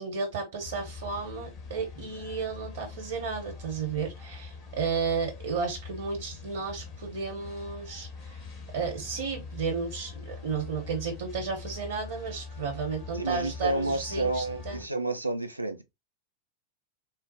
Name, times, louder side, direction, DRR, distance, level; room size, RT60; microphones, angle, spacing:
voice 1, 0.0-8.4 8.7-14.8, right 5 dB, 55° right, 0.9 m, -33 dB
sound 1, 0.6-14.9, left 4 dB, 40° left, 1.1 m, -43 dB
voice 2, 13.1-15.8, right 2 dB, 90° right, 0.5 m, -30 dB
3.8 x 2.0 x 2.8 m
figure-of-eight pair, 90°, 0 cm